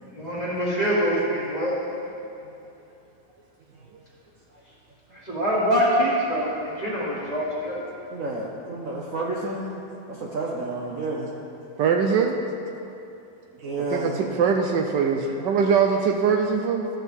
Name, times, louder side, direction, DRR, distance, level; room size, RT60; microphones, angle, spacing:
voice 1, 0.2-1.7 5.2-7.8, equal, 25° left, -6 dB, 1.4 m, -24 dB
voice 2, 8.1-11.4 13.6-14.2, right 2 dB, 55° right, -3 dB, 1.0 m, -31 dB
voice 3, 11.8-12.4 13.6-16.9, right 6 dB, 75° right, 3 dB, 1.2 m, -22 dB
13.5 x 6.4 x 3.5 m, 2.7 s
omnidirectional pair, 2.1 m